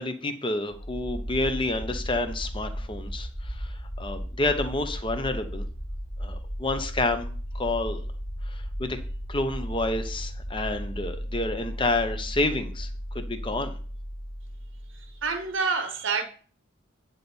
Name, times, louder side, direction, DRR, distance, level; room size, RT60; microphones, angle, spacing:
voice 1, 0.0-3.7 4.0-5.6 6.2-8.0 8.5-8.6 8.8-9.0 9.3-12.9 13.1-13.8, left 2 dB, 25° left, 0.8 m, -29 dB
sound 1, 0.7-15.5, equal, 45° left, 2.0 m, -35 dB
voice 2, 14.9-16.2, right 4 dB, 65° right, 0.9 m, -28 dB
9.9 x 4.1 x 6.9 m
head